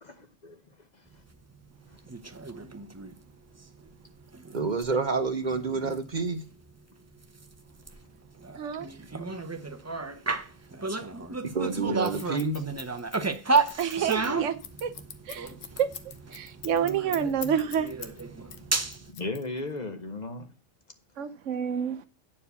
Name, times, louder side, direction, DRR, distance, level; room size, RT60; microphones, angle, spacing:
voice 1, 0.0-0.6 19.1-20.5, left 2 dB, 40° left, 0.9 m, -36 dB
sound 1, 2.0-3.2 3.6-3.9 4.2-6.5 6.7-6.8 7.2-19.1, right 4 dB, 20° right, 0.4 m, -32 dB
voice 2, 4.5-6.4 11.4-12.6, right 4 dB, 40° right, 0.8 m, -28 dB
voice 3, 8.6-8.9 13.8-14.6 14.8-14.9 15.3-15.5 15.8-15.9 16.3-18.0 21.2-22.1, right 8 dB, 75° right, 1.0 m, -28 dB
Scissors, 12.0-18.2 18.5-19.8, left 8 dB, 85° left, 1.3 m, -42 dB
9.5 x 4.7 x 6.8 m
omnidirectional pair, 1.3 m